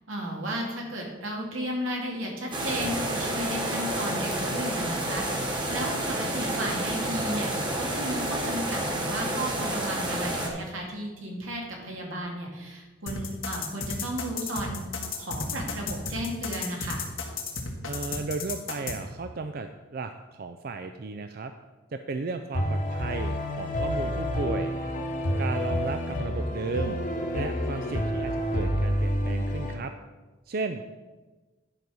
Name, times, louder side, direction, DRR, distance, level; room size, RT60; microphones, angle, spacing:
voice 1, 0.1-14.8 15.2-17.1, right 1 dB, 85° right, -1 dB, 2.3 m, -34 dB
sound 1, 2.5-10.5, right 1 dB, 25° right, 1.4 m, -30 dB
sound 2, 13.1-19.0, left 5 dB, 90° left, 1.7 m, -33 dB
voice 2, 17.9-21.5 21.9-24.7 25.4-27.0 27.3-29.9 30.5-30.8, right 3 dB, 50° right, 8 dB, 0.4 m, -34 dB
sound 3, 22.5-29.7, equal, 40° left, 1.1 m, -28 dB
10.5 x 5.2 x 6.2 m, 1.2 s
head